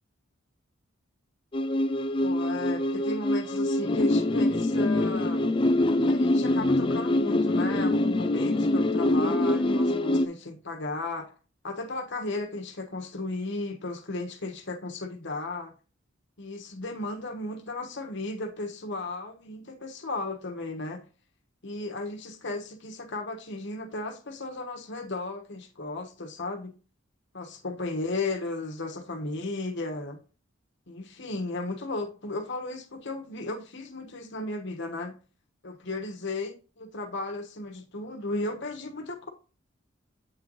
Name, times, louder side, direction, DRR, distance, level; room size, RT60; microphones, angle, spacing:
sound 1, 1.5-10.3, left 1 dB, 25° left, 0.4 m, -24 dB
voice 1, 2.2-5.6 6.0-11.3 11.6-15.7 16.4-21.0 21.6-26.7 27.3-30.2 30.9-35.2 35.6-39.3, left 2 dB, 60° left, 1.2 m, -35 dB
8.4 x 4.0 x 3.1 m
head